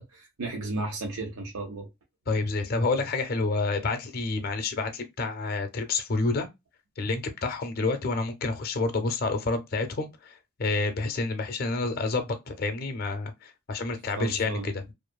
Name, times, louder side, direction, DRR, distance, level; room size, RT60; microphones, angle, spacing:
voice 1, 0.0-1.9 14.2-14.7, right 2 dB, 90° right, 0.7 m, -34 dB
voice 2, 2.3-6.5 7.0-14.9, left 3 dB, 40° left, 0.4 m, -29 dB
2.6 x 2.4 x 2.2 m
head